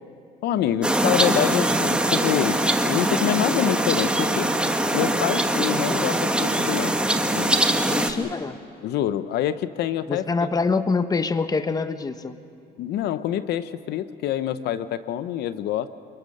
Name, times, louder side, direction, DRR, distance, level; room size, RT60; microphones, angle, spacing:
voice 1, 0.4-4.5 4.9-6.9 7.3-7.8 8.2-8.3 8.8-10.5 12.8-15.9, left 11 dB, 75° left, 13 dB, 0.7 m, -26 dB
sound 1, 0.8-8.1, right 1 dB, 5° right, 1.5 m, -22 dB
voice 2, 7.9-8.6 10.1-12.3, left 4 dB, 20° left, 11 dB, 1.0 m, -25 dB
29.0 x 21.0 x 6.5 m, 2.7 s
cardioid pair, 110°, 17 cm